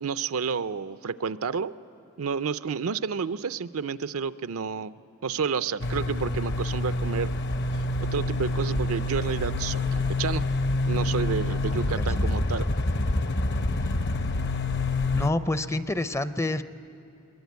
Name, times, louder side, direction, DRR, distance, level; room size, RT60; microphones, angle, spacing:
voice 1, 0.0-1.7 2.2-4.9 5.2-7.3 7.7-10.4 10.8-12.7, right 5 dB, 80° right, 13 dB, 0.5 m, -30 dB
sound 1, 5.8-15.3, left 2 dB, 55° left, 0.8 m, -27 dB
voice 2, 11.5-12.3 15.1-16.6, left 2 dB, 15° left, 12 dB, 0.5 m, -29 dB
23.0 x 21.5 x 9.3 m, 2.8 s
head